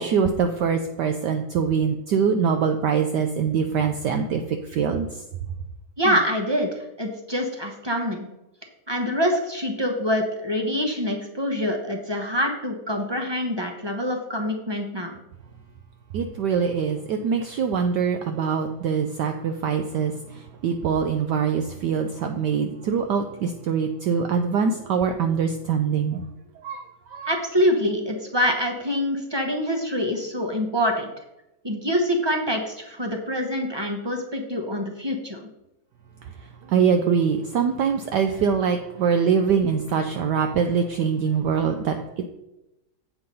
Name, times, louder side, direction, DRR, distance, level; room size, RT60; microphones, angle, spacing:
voice 1, 0.0-4.4 4.7-5.1 16.1-20.1 20.6-26.2 26.6-26.8 27.1-27.3 36.7-42.0, right 6 dB, 70° right, 6 dB, 1.1 m, -23 dB
voice 2, 6.0-8.3 8.9-15.2 27.2-31.1 31.6-35.4, equal, 30° right, 3 dB, 0.4 m, -25 dB
8.1 x 5.8 x 5.4 m, 0.92 s
omnidirectional pair, 2.2 m